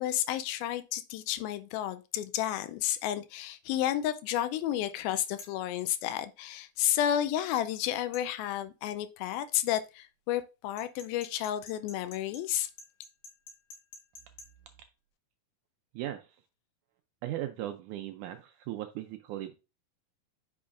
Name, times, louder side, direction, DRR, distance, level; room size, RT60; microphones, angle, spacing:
voice 1, 0.0-12.7, left 12 dB, 90° left, 2.4 m, -31 dB
sound 1, 5.4-5.6 8.1-8.3 10.8-14.5, left 3 dB, 70° left, 2.9 m, -49 dB
voice 2, 15.9-16.4 17.2-19.5, right 13 dB, 85° right, 1.8 m, -38 dB
8.6 x 5.5 x 2.5 m
omnidirectional pair, 4.1 m